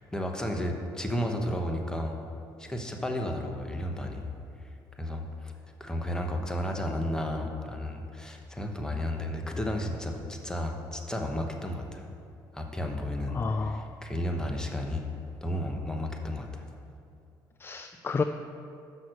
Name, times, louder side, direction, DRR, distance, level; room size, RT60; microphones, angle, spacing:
voice 1, 0.0-2.2 2.6-4.3 4.6-4.7 5.0-5.5 5.8-12.1 12.5-15.1 15.4-16.7, left 1 dB, 10° left, 3 dB, 1.0 m, -33 dB
voice 2, 13.3-13.9 17.6-18.2, left 4 dB, 25° left, 7 dB, 0.3 m, -30 dB
6.4 x 5.7 x 6.5 m, 2.5 s
cardioid pair, 85°, 8 cm